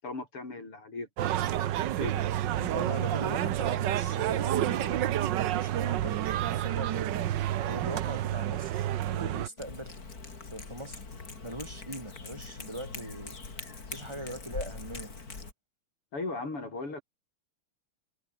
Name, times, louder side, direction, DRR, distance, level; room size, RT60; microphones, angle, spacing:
voice 1, 0.0-1.1 2.0-2.3 16.1-17.0, left 3 dB, 85° left, 7.9 m, -37 dB
sound 1, 1.2-9.5, right 12 dB, 65° right, 1.3 m, -29 dB
voice 2, 2.6-6.2 6.5-10.0 10.5-11.0 11.4-13.3 13.9-15.1, right 1 dB, 10° right, 2.9 m, -41 dB
Cat, 9.6-15.5, left 4 dB, 40° left, 3.6 m, -42 dB
omnidirectional pair, 2.4 m